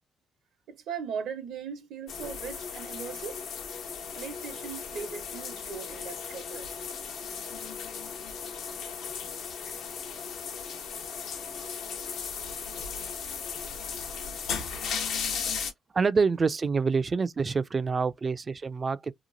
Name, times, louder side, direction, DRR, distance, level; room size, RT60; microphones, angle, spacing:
voice 1, 0.7-3.4 4.1-6.7, right 7 dB, 80° right, 0.9 m, -39 dB
sound 1, 2.1-15.7, left 6 dB, 80° left, 0.8 m, -36 dB
voice 2, 15.9-19.1, right 4 dB, 35° right, 0.3 m, -26 dB
2.9 x 2.4 x 2.5 m
cardioid pair, 90°, 0 cm